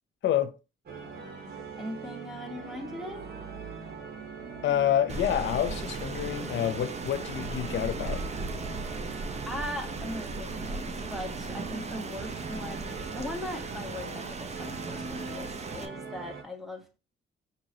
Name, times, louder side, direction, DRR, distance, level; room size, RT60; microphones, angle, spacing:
voice 1, 0.2-0.6 4.6-8.3, left 10 dB, 70° left, 0.7 m, -28 dB
sound 1, 0.9-16.4, right 4 dB, 55° right, 1.6 m, -42 dB
voice 2, 1.8-3.3 9.4-17.0, left 1 dB, ahead, 1.3 m, -39 dB
Rain, 5.1-15.9, right 3 dB, 35° right, 0.7 m, -37 dB
5.4 x 3.0 x 2.8 m
cardioid pair, 90°, 20 cm